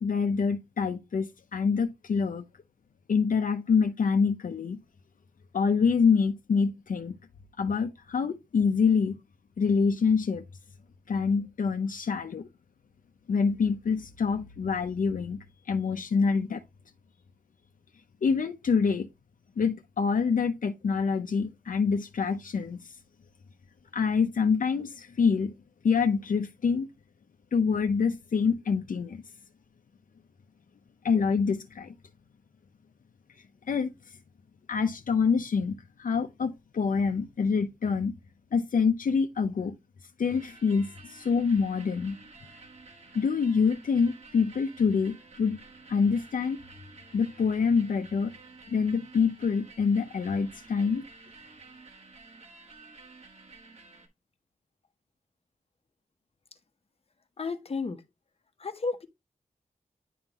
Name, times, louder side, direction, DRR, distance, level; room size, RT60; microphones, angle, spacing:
voice 1, 0.0-2.4 3.1-4.8 5.5-7.2 7.6-9.2 9.6-10.4 11.1-12.5 13.3-16.6 18.2-19.1 19.6-23.0 23.9-25.5 25.8-26.9 27.5-29.2 31.0-31.9 33.7-34.2 34.7-38.1 38.5-39.7 40.2-42.2 43.1-45.6 45.9-46.6 47.1-48.3 48.7-51.0, left 5 dB, 75° left, 0.6 m, -26 dB
sound 1, 40.2-54.1, right 3 dB, 50° right, 1.6 m, -52 dB
voice 2, 57.4-58.0 58.6-59.1, left 4 dB, 45° left, 0.9 m, -32 dB
10.0 x 3.7 x 2.9 m
wide cardioid pair, 90°, 14 cm